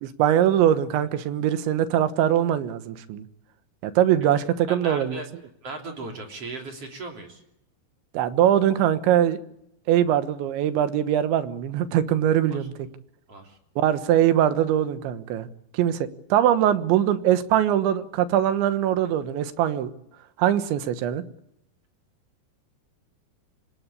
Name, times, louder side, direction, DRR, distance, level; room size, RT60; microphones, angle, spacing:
voice 1, 0.0-3.3 3.8-5.2 8.1-9.4 9.9-12.9 13.8-15.5 15.7-19.9 20.4-21.2, right 11 dB, 85° right, 3.6 m, -22 dB
voice 2, 4.7-5.3 5.6-7.4 12.6-12.7 13.3-13.6, right 2 dB, 35° right, 3.9 m, -37 dB
26.0 x 18.5 x 8.5 m
omnidirectional pair, 5.1 m